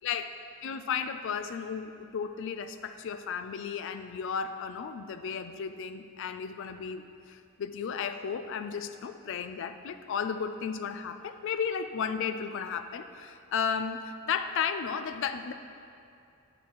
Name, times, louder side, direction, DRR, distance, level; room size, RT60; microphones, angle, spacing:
voice 1, 0.6-15.5, left 6 dB, 60° left, 10 dB, 0.3 m, -34 dB
8.4 x 5.9 x 3.0 m, 2.4 s
head